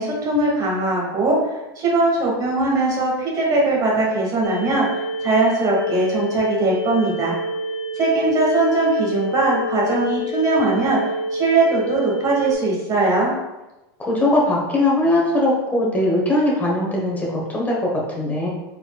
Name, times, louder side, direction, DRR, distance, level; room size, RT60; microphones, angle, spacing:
voice 1, 0.0-1.4 1.8-4.9 5.2-7.3 7.9-11.0 11.3-13.3, right 2 dB, 30° right, -3 dB, 1.4 m, -20 dB
sound 1, 4.4-12.5, left 1 dB, 85° left, 0.4 m, -27 dB
voice 2, 14.0-18.5, left 1 dB, 10° left, -3 dB, 1.1 m, -20 dB
4.3 x 4.2 x 2.3 m, 1.0 s
supercardioid pair, 145°, 13 cm